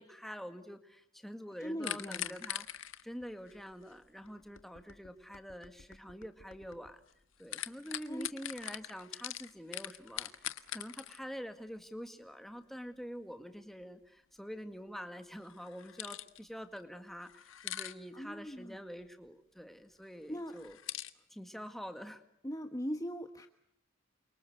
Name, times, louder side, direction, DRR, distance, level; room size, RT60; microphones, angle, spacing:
voice 1, 0.0-7.0 7.4-20.8 21.3-22.2, equal, ahead, 7 dB, 1.9 m, -46 dB
voice 2, 1.6-2.4 8.1-8.3 18.1-18.8 20.3-20.5 22.4-23.5, equal, 15° left, 7 dB, 1.3 m, -40 dB
sound 1, 1.8-7.1 7.4-11.2 15.4-16.4 16.8-16.9 17.3-17.9 20.5-21.1, left 12 dB, 80° left, 1.5 m, -42 dB
29.0 x 25.0 x 8.0 m, 0.70 s
head